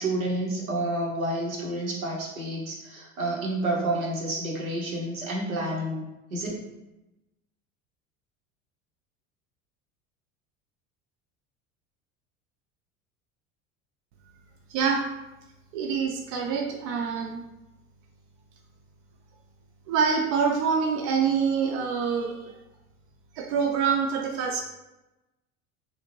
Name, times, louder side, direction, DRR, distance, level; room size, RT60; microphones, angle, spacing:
voice 1, 0.0-6.0 6.3-6.5, right 1 dB, 90° right, -3 dB, 0.8 m, -29 dB
voice 2, 14.7-15.0 15.7-17.4 19.9-22.5 23.3-24.6, right 6 dB, 60° right, 1 dB, 0.5 m, -26 dB
2.6 x 2.1 x 3.0 m, 0.98 s
hypercardioid pair, 75°, 41 cm